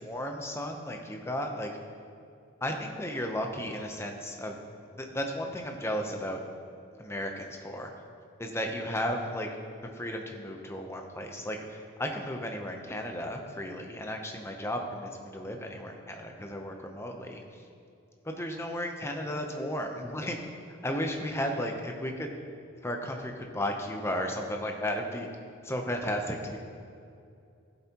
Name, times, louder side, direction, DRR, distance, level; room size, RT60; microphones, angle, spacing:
voice 1, 0.0-1.7 2.6-4.6 4.9-6.4 7.0-7.9 8.4-9.5 9.9-17.6 18.2-20.4 20.8-22.3 22.8-25.3 25.6-26.6, equal, 10° left, 3 dB, 0.7 m, -34 dB
14.5 x 8.1 x 3.0 m, 2.5 s
head